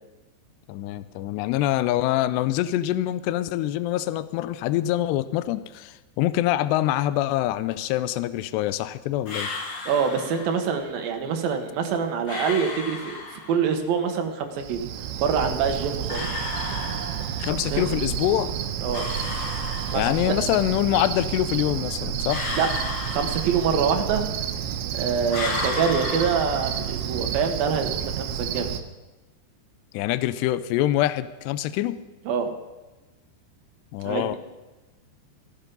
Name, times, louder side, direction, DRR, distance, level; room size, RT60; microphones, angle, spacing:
voice 1, 0.7-9.5 17.4-18.5 20.0-22.4 29.9-32.0 33.9-34.4, left 13 dB, 80° left, 13 dB, 2.6 m, -25 dB
sound 1, 9.3-10.7 12.3-13.8 16.1-17.6 18.9-20.5 22.3-24.0 25.3-27.1, left 3 dB, 55° left, 1.5 m, -33 dB
voice 2, 9.8-14.8 15.2-16.3 17.7-17.8 18.8-19.1 19.9-20.4 22.5-22.7 23.1-24.2 24.9-28.7 32.3-32.5 34.0-34.4, right 6 dB, 65° right, 4 dB, 2.7 m, -25 dB
Cricket, 14.6-28.8, right 9 dB, 85° right, 3.1 m, -30 dB
16.5 x 11.5 x 5.4 m, 1.1 s
omnidirectional pair, 5.2 m